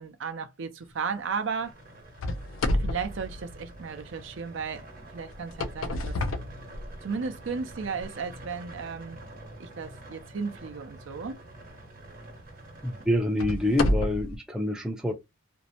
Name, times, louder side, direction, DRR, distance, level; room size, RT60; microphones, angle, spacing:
voice 1, 0.0-1.8 2.7-6.1 7.0-9.2 9.6-11.4, right 5 dB, 65° right, 0.5 m, -35 dB
sound 1, 1.6-13.1, right 2 dB, 40° right, 0.9 m, -47 dB
sound 2, 2.2-4.2 5.3-7.3 7.9-8.0 8.7-8.8 11.4-11.6 12.2-12.3 13.1-14.4, left 1 dB, 75° left, 0.4 m, -30 dB
voice 2, 12.8-15.1, left 1 dB, 5° right, 0.4 m, -27 dB
2.6 x 2.0 x 2.7 m
head